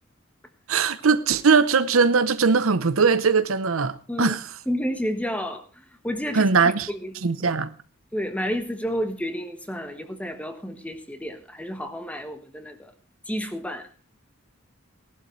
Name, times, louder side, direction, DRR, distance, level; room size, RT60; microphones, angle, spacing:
voice 1, 0.7-4.6 6.3-6.9 7.2-7.7, right 5 dB, 80° right, 0.8 m, -20 dB
voice 2, 4.7-5.6 6.0-6.4 6.9-7.1 8.1-12.8 13.3-13.8, equal, 5° left, 1.3 m, -30 dB
18.0 x 12.0 x 3.2 m
head